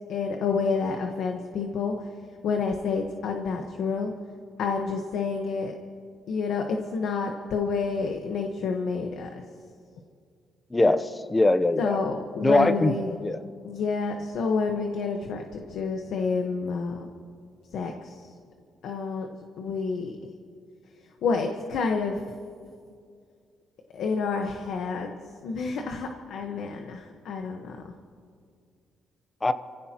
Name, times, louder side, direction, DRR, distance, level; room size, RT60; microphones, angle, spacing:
voice 1, 0.1-2.1 2.4-4.1 4.6-5.8 6.3-9.3 11.8-13.2 13.6-17.1 17.7-18.3 18.8-19.3 19.6-20.2 21.2-22.2 23.9-25.1 25.4-27.8, left 4 dB, 75° left, 3 dB, 1.3 m, -29 dB
voice 2, 10.7-12.0 12.4-12.9 13.2-13.4 29.4-29.5, left 2 dB, 20° left, 12 dB, 0.8 m, -21 dB
28.5 x 16.0 x 3.0 m, 2.2 s
cardioid pair, 90°, 0 cm